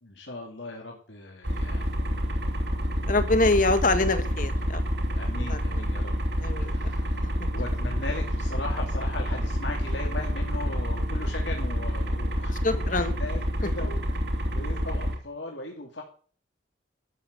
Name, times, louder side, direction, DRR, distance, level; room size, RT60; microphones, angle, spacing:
voice 1, 0.0-2.5 5.1-6.1 6.5-14.1 14.5-16.0, left 2 dB, 65° left, 0 dB, 2.5 m, -38 dB
sound 1, 1.4-15.1, equal, 60° right, 3.0 m, -28 dB
voice 2, 3.1-4.8 5.4-5.8 6.4-6.7 12.5-13.1, left 2 dB, 45° left, 10 dB, 1.6 m, -25 dB
12.5 x 7.7 x 7.8 m, 0.42 s
head